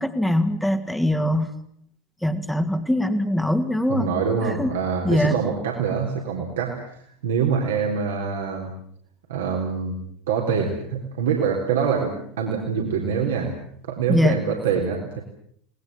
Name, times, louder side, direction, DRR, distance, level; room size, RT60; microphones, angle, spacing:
voice 1, 0.0-1.5 2.2-4.1 4.6-4.7 5.0-5.4 14.1-14.4, left 1 dB, 5° left, 9 dB, 2.4 m, -22 dB
voice 2, 3.9-6.9 7.2-8.7 9.3-10.0 10.3-13.5 13.8-15.2, right 6 dB, 65° right, 0 dB, 3.7 m, -25 dB
30.0 x 19.5 x 7.3 m, 0.65 s
figure-of-eight pair, 75°, 0 cm